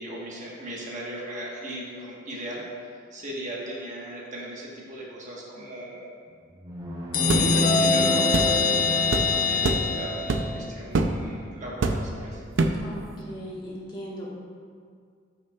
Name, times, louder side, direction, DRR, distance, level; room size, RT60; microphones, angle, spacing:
voice 1, 0.0-2.6 3.1-6.1 7.2-12.4, right 1 dB, 40° right, -4 dB, 1.3 m, -37 dB
sound 1, 6.3-9.5, right 1 dB, 20° right, 0.8 m, -35 dB
sound 2, 7.1-10.7, left 3 dB, 50° left, 0.7 m, -23 dB
sound 3, 7.3-7.5 8.3-8.5 9.1-9.3 9.6-9.9 10.3-10.5 10.9-11.2 11.8-12.2 12.6-12.9, right 3 dB, 80° right, 0.5 m, -24 dB
voice 2, 12.8-14.3, equal, 25° left, -5 dB, 1.8 m, -37 dB
13.0 x 5.7 x 2.4 m, 2.1 s
head